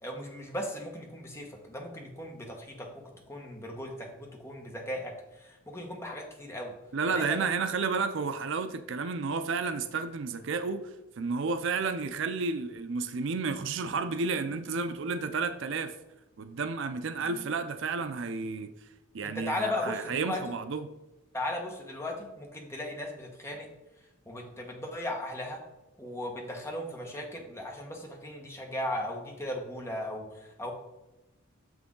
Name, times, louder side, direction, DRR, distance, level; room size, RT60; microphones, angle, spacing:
voice 1, 0.0-6.7 7.1-7.5 19.2-20.6 21.3-23.7 24.3-25.6 26.0-30.7, left 1 dB, 15° left, 1.2 m, -37 dB
voice 2, 6.9-15.9 16.4-18.7 19.1-20.9, right 4 dB, 60° right, 0.5 m, -31 dB
6.7 x 6.1 x 3.7 m
head